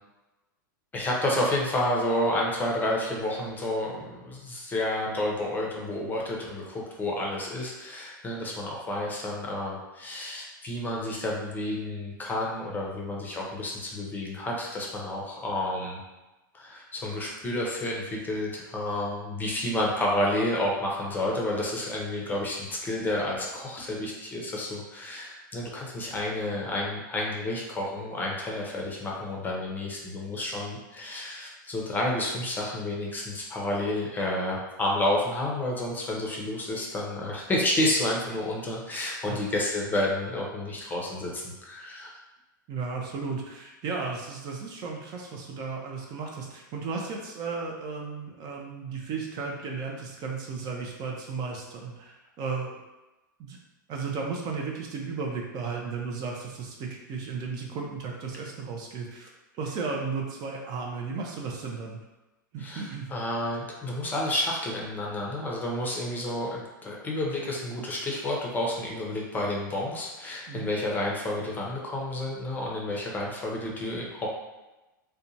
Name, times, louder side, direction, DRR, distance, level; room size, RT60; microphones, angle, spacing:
voice 1, 0.9-16.0 16.5-42.2 62.6-74.3, left 1 dB, 15° left, -2 dB, 0.6 m, -30 dB
voice 2, 42.7-52.8 53.4-53.6 53.9-59.3 59.6-62.0 62.5-63.1 70.5-70.7, right 4 dB, 40° right, 0 dB, 0.5 m, -34 dB
2.6 x 2.2 x 2.6 m, 1.1 s
hypercardioid pair, 110°, 11 cm